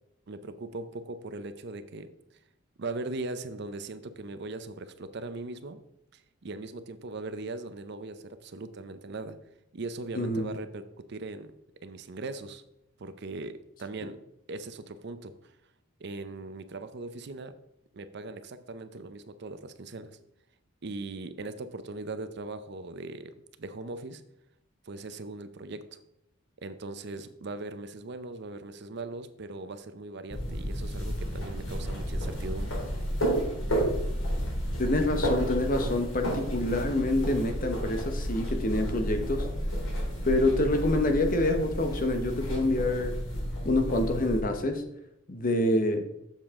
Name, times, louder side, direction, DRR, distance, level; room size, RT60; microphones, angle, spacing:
voice 1, 0.3-2.1 2.8-5.8 6.1-9.4 9.7-11.5 11.8-12.6 13.0-14.2 14.5-15.5 16.0-17.5 17.9-20.2 20.8-24.2 24.8-26.0 26.6-32.8, right 3 dB, 55° right, 11 dB, 0.6 m, -39 dB
voice 2, 10.1-10.5 34.8-39.5 40.2-43.2 43.6-44.8 45.3-46.1, left 1 dB, 45° left, 6 dB, 1.0 m, -27 dB
sound 1, 30.3-44.4, equal, 80° left, 2.9 m, -31 dB
7.3 x 7.3 x 3.6 m, 0.83 s
head